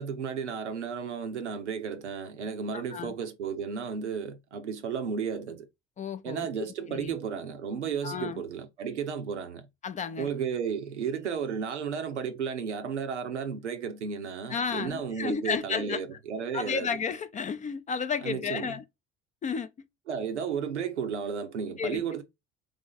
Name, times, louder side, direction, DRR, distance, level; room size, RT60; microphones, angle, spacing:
voice 1, 0.0-5.7 6.2-9.7 10.2-16.9 18.2-18.7 20.1-22.2, right 6 dB, 85° right, 0.7 m, -33 dB
voice 2, 2.7-3.1 6.0-7.1 8.0-8.4 9.8-10.3 14.5-16.0 16.5-18.8 19.4-19.7 21.8-22.0, left 6 dB, 25° left, 0.4 m, -32 dB
3.4 x 3.2 x 3.9 m
figure-of-eight pair, 65°, 34 cm